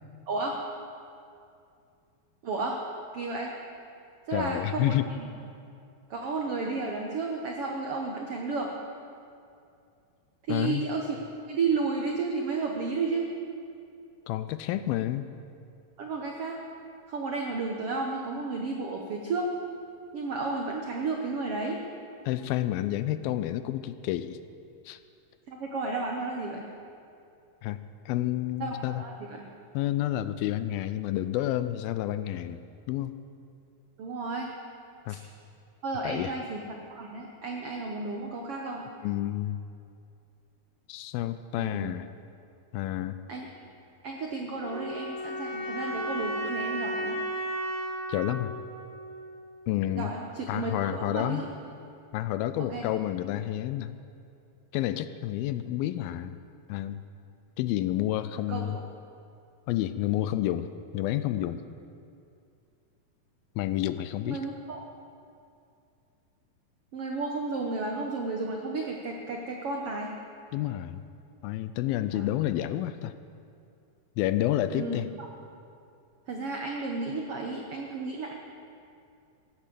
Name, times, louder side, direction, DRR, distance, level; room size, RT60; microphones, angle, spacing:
voice 1, 0.3-0.6 2.4-2.8 3.1-3.5 4.3-5.3 6.1-8.7 10.5-11.2 11.5-13.3 16.0-16.6 17.1-19.5 20.1-21.8 25.5-26.6 28.6-29.5 34.0-34.5 35.1-35.2 35.8-38.8 41.6-41.9 43.3-43.5 44.0-47.2 49.9-51.5 52.6-52.9 58.5-58.8 64.3-64.8 66.9-70.1 72.1-72.3 74.7-75.0 76.3-78.3, right 3 dB, 80° right, 1 dB, 1.3 m, -32 dB
voice 2, 4.3-5.1 10.5-10.9 14.3-15.3 22.3-24.4 24.9-25.0 27.6-27.8 28.1-29.0 29.7-32.6 32.9-33.2 35.1-35.2 36.0-36.3 39.0-39.6 40.9-42.1 42.7-43.2 48.1-48.5 49.7-50.1 50.5-51.5 52.1-53.9 54.7-56.4 56.7-57.0 57.6-58.8 59.7-61.6 63.6-64.4 70.5-71.0 71.4-73.1 74.2-75.1, left 13 dB, 85° left, 12 dB, 2.3 m, -29 dB
sound 1, 44.6-49.6, right 1 dB, 10° left, 3.3 m, -34 dB
16.0 x 9.9 x 7.6 m, 2.5 s
omnidirectional pair, 4.4 m